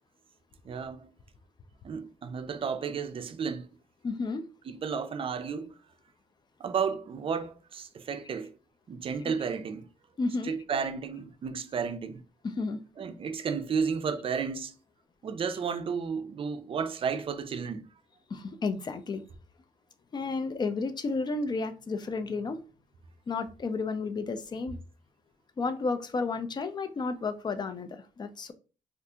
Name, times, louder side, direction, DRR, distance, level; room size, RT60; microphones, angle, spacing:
voice 1, 0.6-1.1 1.8-3.7 4.7-5.7 6.6-8.5 8.9-9.9 10.4-12.2 13.0-14.8 15.2-17.9, right 6 dB, 45° right, 0.4 m, -32 dB
voice 2, 4.0-4.4 9.2-9.3 10.2-10.5 12.4-12.8 18.3-19.2 20.1-22.6 23.3-24.8 25.6-28.5, left 4 dB, 35° left, 0.4 m, -32 dB
2.7 x 2.4 x 3.5 m
cardioid pair, 110°, 13 cm